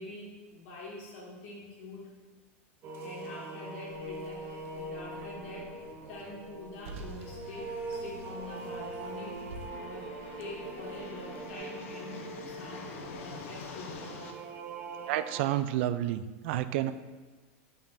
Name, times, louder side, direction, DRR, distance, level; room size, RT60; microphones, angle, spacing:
voice 1, 0.0-2.1 3.0-9.4 9.7-14.2, left 2 dB, 65° left, -4 dB, 2.2 m, -45 dB
sound 1, 2.8-15.5, right 2 dB, 30° right, 0.7 m, -42 dB
Car, 3.9-11.6, right 2 dB, 80° right, 0.8 m, -50 dB
sound 2, 7.1-14.3, left 5 dB, 85° left, 0.9 m, -47 dB
voice 2, 15.1-16.9, right 13 dB, 60° right, 12 dB, 0.4 m, -30 dB
8.6 x 5.6 x 2.6 m, 1.3 s
supercardioid pair, 150°, 7 cm